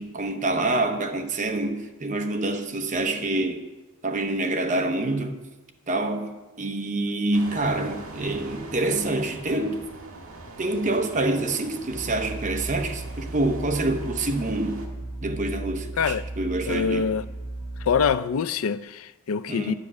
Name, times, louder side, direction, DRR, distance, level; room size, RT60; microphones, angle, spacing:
voice 1, 0.0-3.7 4.0-5.4 5.9-9.9 10.6-14.9 15.2-17.1 19.5-19.7, right 2 dB, 35° right, 0.9 m, -26 dB
sound 1, 7.3-14.9, right 2 dB, 75° right, 1.6 m, -43 dB
sound 2, 11.9-18.1, right 2 dB, 35° left, 1.8 m, -36 dB
voice 2, 16.7-17.3 17.8-19.7, left 6 dB, 70° left, 0.4 m, -25 dB
9.8 x 6.0 x 8.2 m
head